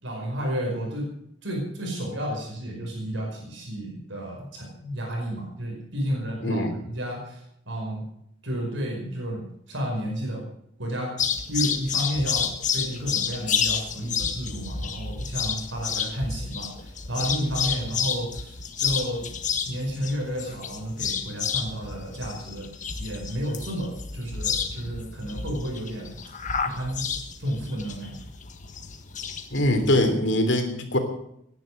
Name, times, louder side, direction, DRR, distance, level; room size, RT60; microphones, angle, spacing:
voice 1, 0.0-1.1 1.4-8.1 8.4-10.4 10.8-11.1 11.5-22.7 23.0-26.2 26.6-27.0 27.4-28.3, equal, 75° right, 0 dB, 5.2 m, -31 dB
voice 2, 6.4-6.7 29.5-31.0, left 1 dB, 70° left, 6 dB, 3.2 m, -22 dB
sound 1, 11.2-30.0, left 6 dB, 40° left, 1.6 m, -30 dB
17.5 x 10.5 x 6.4 m, 0.73 s
head